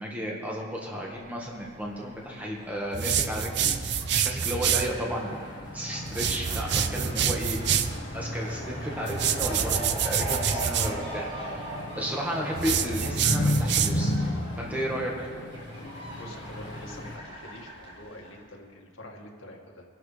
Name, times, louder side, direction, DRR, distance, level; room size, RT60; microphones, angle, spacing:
voice 1, 0.0-7.6 8.1-11.3 11.9-14.3 14.6-15.3, equal, 10° right, -3 dB, 1.5 m, -33 dB
Fowl, 1.1-18.4, right 1 dB, 25° right, 2.8 m, -41 dB
sound 1, 2.9-4.9 6.1-8.0 9.1-10.9 12.6-14.2, right 8 dB, 55° right, 0.6 m, -27 dB
sound 2, 4.4-17.2, left 1 dB, 60° left, 1.3 m, -34 dB
voice 2, 16.2-19.8, left 1 dB, 80° left, 0 dB, 2.0 m, -46 dB
23.5 x 11.5 x 3.4 m, 2.2 s
head